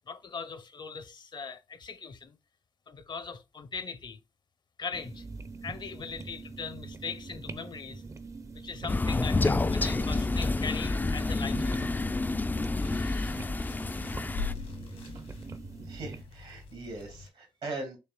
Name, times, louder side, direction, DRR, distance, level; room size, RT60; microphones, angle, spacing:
voice 1, 0.1-2.4 2.9-4.2 4.8-5.3 5.6-8.0 8.5-12.0 12.7-13.5, left 5 dB, 50° left, 0.7 m, -40 dB
sound 1, 4.9-16.2, right 3 dB, 30° right, 0.6 m, -44 dB
Crow, 8.9-14.5, left 3 dB, 20° left, 0.3 m, -29 dB
sound 2, 10.0-17.3, left 5 dB, 80° left, 1.3 m, -44 dB
voice 2, 15.0-15.4 15.8-18.0, right 2 dB, 75° right, 2.0 m, -40 dB
5.5 x 3.3 x 2.2 m
supercardioid pair, 45°, 10 cm